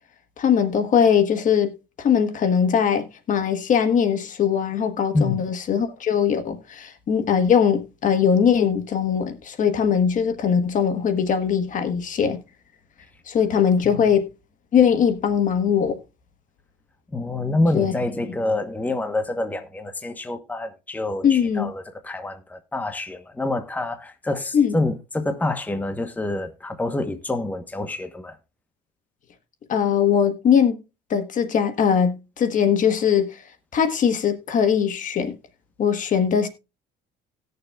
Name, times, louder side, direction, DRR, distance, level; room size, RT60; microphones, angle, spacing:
voice 1, 0.4-12.4 13.3-14.3 14.7-16.0 17.7-17.9 21.2-21.7 24.5-24.7 29.7-30.8 31.1-33.4 33.7-35.3 35.8-36.5, left 7 dB, 50° left, 1.2 m, -20 dB
voice 2, 17.1-28.4, left 2 dB, 10° left, 0.9 m, -27 dB
18.5 x 6.7 x 2.3 m
cardioid pair, 110°, 17 cm